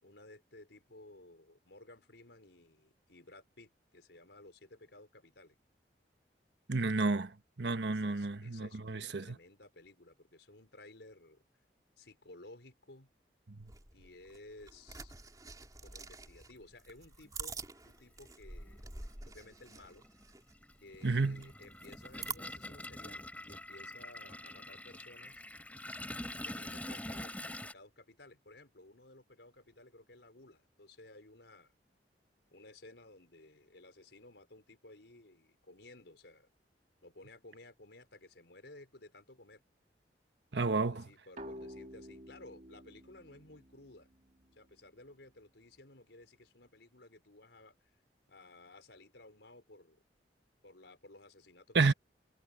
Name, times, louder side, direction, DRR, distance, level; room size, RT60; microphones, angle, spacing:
voice 1, 0.0-5.6 7.8-11.4 12.0-13.1 13.9-15.1 15.8-18.8 19.2-20.1 20.8-25.4 26.4-31.7 32.5-36.5 37.0-39.6 40.5-44.1 44.5-47.7 48.3-50.0 50.6-51.9, left 2 dB, 80° left, 4.7 m, -56 dB
voice 2, 6.7-7.3 7.6-9.2 13.5-13.7 21.0-21.5 40.5-41.1 51.7-51.9, right 3 dB, 75° right, 1.2 m, -31 dB
sound 1, 13.6-22.4, right 4 dB, 20° right, 3.4 m, -48 dB
Toilet flush, 17.2-17.3 18.6-18.8 19.1-27.7, left 1 dB, 10° left, 3.7 m, -45 dB
sound 2, 41.4-44.8, equal, 45° right, 2.3 m, -51 dB
head